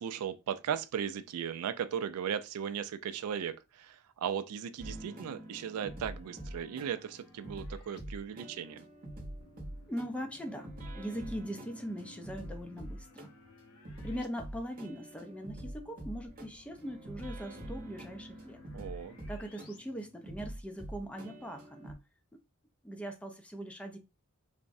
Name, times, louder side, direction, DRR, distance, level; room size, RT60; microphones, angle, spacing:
voice 1, 0.0-8.9 18.7-19.2, right 8 dB, 75° right, 0.3 m, -37 dB
sound 1, 4.8-21.9, right 1 dB, 40° right, 0.8 m, -46 dB
sound 2, 4.9-8.0 9.4-14.3 14.6-14.7 16.2-19.8, left 2 dB, 80° left, 0.6 m, -59 dB
voice 2, 9.9-13.3 14.0-18.6 19.3-22.0 22.8-24.0, equal, 5° left, 0.4 m, -41 dB
3.4 x 2.0 x 2.5 m
head